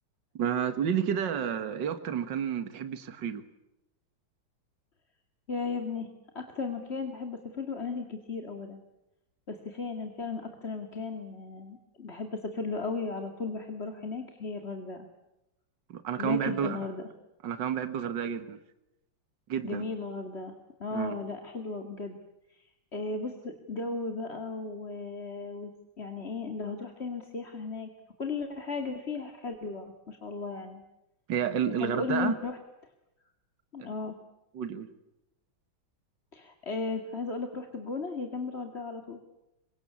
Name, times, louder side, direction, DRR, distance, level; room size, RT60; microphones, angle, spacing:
voice 1, 0.4-3.4 15.9-16.8 17.4-18.6 19.5-19.8 20.9-21.2 31.3-32.3 33.8-33.9 34.5-34.9, right 8 dB, 65° right, 10 dB, 2.2 m, -30 dB
voice 2, 5.5-8.8 9.5-15.1 16.2-17.0 19.6-22.2 22.5-25.7 26.0-27.9 28.2-30.8 31.8-32.6 33.7-34.1 36.3-39.2, left 4 dB, 30° left, 5 dB, 2.5 m, -35 dB
27.5 x 24.5 x 8.6 m, 0.91 s
omnidirectional pair, 2.2 m